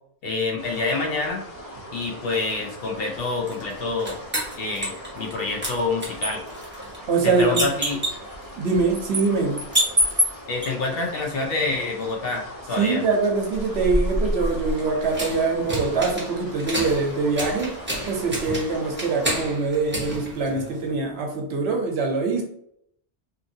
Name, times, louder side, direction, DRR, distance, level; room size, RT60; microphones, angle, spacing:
voice 1, 0.2-1.4 1.9-4.2 4.5-6.4 7.2-8.0 10.5-13.0, left 3 dB, 60° left, 1 dB, 0.7 m, -27 dB
sound 1, 0.6-19.3, equal, 35° left, 1.3 m, -40 dB
sound 2, 3.5-5.4 5.6-10.7 13.5-21.0, equal, 10° right, 0.6 m, -28 dB
voice 2, 7.1-7.6 8.6-9.6 12.8-17.7 18.1-22.4, right 4 dB, 70° right, 1 dB, 0.9 m, -23 dB
2.8 x 2.5 x 2.6 m, 0.71 s
omnidirectional pair, 1.2 m